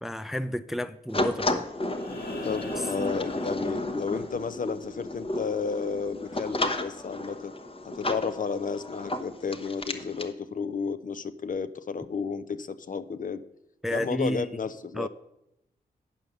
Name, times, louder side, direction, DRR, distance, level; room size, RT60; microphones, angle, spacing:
voice 1, 0.0-1.7 13.8-14.5 14.9-15.1, equal, ahead, 11 dB, 0.4 m, -31 dB
sound 1, 1.1-10.3, left 1 dB, 35° left, 1.0 m, -33 dB
sound 2, 1.9-4.2 6.1-6.2, left 3 dB, 85° left, 1.8 m, -42 dB
voice 2, 2.4-7.5 7.8-13.4 13.9-15.1, left 5 dB, 50° left, 12 dB, 0.6 m, -32 dB
9.3 x 5.6 x 6.5 m, 0.85 s
cardioid pair, 55°, 17 cm